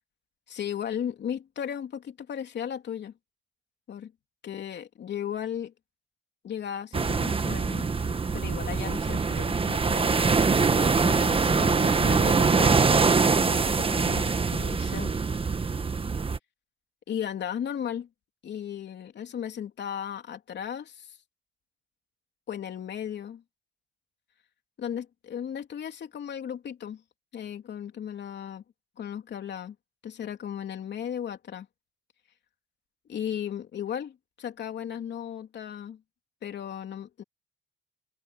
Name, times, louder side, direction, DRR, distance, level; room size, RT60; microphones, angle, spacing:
voice 1, 0.5-3.1 3.9-4.1 4.4-5.7 6.4-15.1 17.1-18.1 18.4-21.2 22.5-23.4 24.8-27.0 27.3-28.6 29.0-29.8 30.0-31.7 33.1-36.0 36.4-37.2, left 9 dB, 60° left, 3.5 m, -36 dB
sound 1, 6.9-16.4, right 4 dB, 25° right, 1.4 m, -24 dB
cardioid pair, 90°, 20 cm